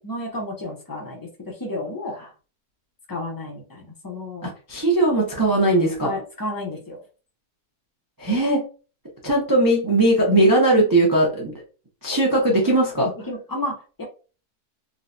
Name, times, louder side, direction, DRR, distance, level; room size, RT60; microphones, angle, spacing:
voice 1, 0.0-2.2 3.1-4.4 6.0-7.0 13.2-14.0, left 1 dB, 20° left, 0 dB, 0.5 m, -32 dB
voice 2, 4.4-6.1 8.2-8.6 9.2-11.5 12.0-13.1, right 1 dB, 30° right, -2 dB, 0.4 m, -19 dB
3.8 x 2.2 x 2.6 m, 0.36 s
omnidirectional pair, 1.7 m